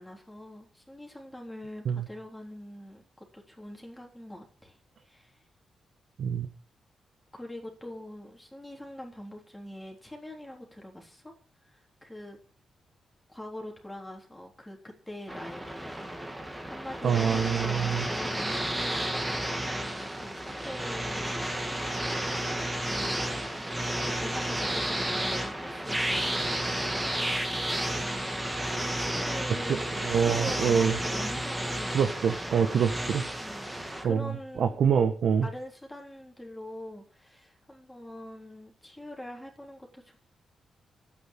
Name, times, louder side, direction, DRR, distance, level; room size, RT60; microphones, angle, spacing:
voice 1, 0.0-4.8 5.0-5.4 7.3-11.3 11.6-12.4 13.3-14.8 15.1-23.8 24.2-26.6 27.8-28.6 28.9-29.8 30.1-32.0 33.4-33.7 34.0-34.8 35.4-40.2, left 1 dB, 10° left, 0 dB, 3.7 m, -43 dB
sound 1, 15.3-34.0, right 1 dB, 10° right, 2.5 m, -32 dB
voice 2, 17.0-18.1 29.7-31.0 31.9-33.3 34.0-35.5, right 7 dB, 65° right, 7 dB, 1.5 m, -26 dB
13.0 x 9.2 x 7.5 m, 0.41 s
wide cardioid pair, 135°, 0 cm